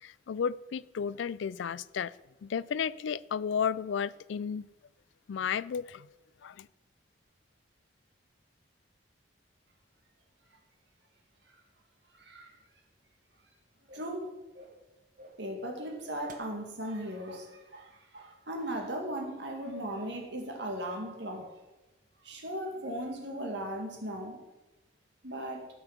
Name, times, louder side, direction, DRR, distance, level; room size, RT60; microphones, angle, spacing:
voice 1, 0.0-2.1 2.4-4.7 5.3-6.1 6.4-6.7, left 7 dB, 70° left, 18 dB, 0.3 m, -33 dB
voice 2, 12.2-12.6 13.9-14.3 15.4-21.5 22.2-24.4 25.2-25.7, right 1 dB, 60° right, 2 dB, 2.1 m, -37 dB
sound 1, 13.9-14.2 14.5-14.9 15.2-15.5 15.8-17.0 17.3-17.5 17.7-18.3 18.6-18.7, right 2 dB, 40° right, 0.9 m, -51 dB
12.5 x 5.6 x 5.8 m, 1.0 s
head